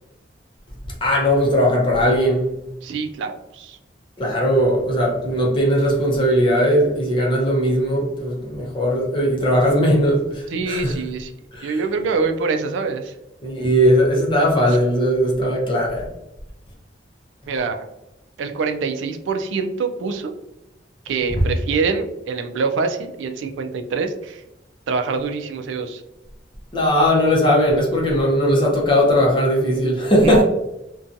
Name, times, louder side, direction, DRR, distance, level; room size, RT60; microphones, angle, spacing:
voice 1, 1.0-2.5 4.2-11.0 11.5-11.8 13.4-16.1 26.7-30.4, equal, 25° left, -3 dB, 0.6 m, -18 dB
voice 2, 2.8-3.8 10.5-11.3 11.6-13.1 17.5-17.9 18.4-20.3 21.1-24.4 24.9-26.0 30.2-30.4, right 4 dB, 90° right, 6 dB, 0.3 m, -25 dB
2.6 x 2.2 x 2.5 m, 0.91 s
head